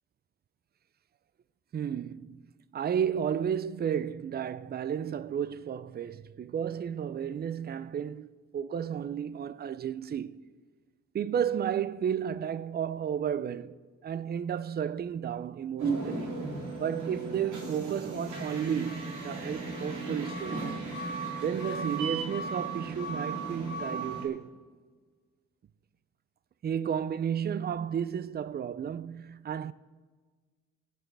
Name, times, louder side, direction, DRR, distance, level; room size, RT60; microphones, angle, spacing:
voice 1, 1.7-2.5 2.7-10.5 11.1-13.7 14.0-16.4 16.8-20.7 21.4-24.6 26.6-29.7, right 8 dB, 35° right, 0.5 m, -32 dB
sound 1, 15.8-24.2, right 3 dB, 70° right, 2.8 m, -35 dB
23.5 x 9.2 x 3.3 m
cardioid pair, 90°, 30 cm